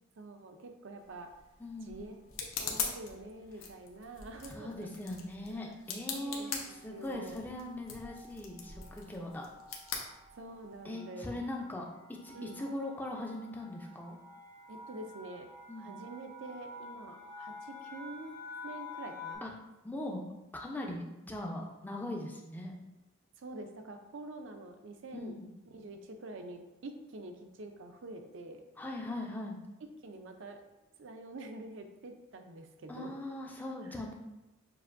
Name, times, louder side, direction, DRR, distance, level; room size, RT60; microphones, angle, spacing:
voice 1, 0.2-1.3 1.8-2.2 2.6-4.9 5.5-5.7 6.1-7.4 10.4-11.4 12.3-12.6 14.7-19.4 23.4-25.4 25.7-28.6 30.0-30.6 31.0-33.1 33.8-34.0, right 2 dB, 65° right, 5 dB, 0.5 m, -46 dB
sound 1, 1.0-10.8, left 6 dB, 75° left, 0.7 m, -42 dB
sound 2, 1.2-1.7 2.4-2.8 3.1-3.3 3.6-19.3, left 3 dB, 55° left, 1.3 m, -51 dB
voice 2, 1.6-2.0 4.5-9.5 10.8-14.2 15.7-15.9 19.4-19.5 19.8-20.2 20.5-22.7 25.1-25.5 28.8-29.6 32.9-34.1, left 1 dB, 10° left, 0 dB, 0.5 m, -40 dB
6.7 x 2.6 x 2.5 m, 0.97 s
head